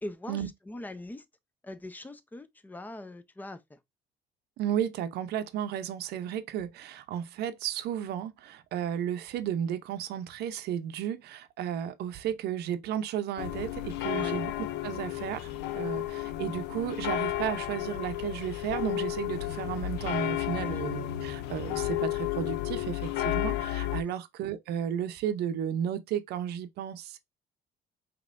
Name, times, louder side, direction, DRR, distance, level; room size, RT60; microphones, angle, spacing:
voice 1, 0.0-1.2 1.6-3.8 14.1-14.4 20.5-20.8 24.0-24.1, left 2 dB, 10° left, 0.6 m, -41 dB
voice 2, 4.6-27.2, right 9 dB, 75° right, 0.7 m, -33 dB
sound 1, 13.4-24.0, left 14 dB, 85° left, 0.6 m, -32 dB
5.1 x 3.0 x 2.5 m
cardioid pair, 110°, 17 cm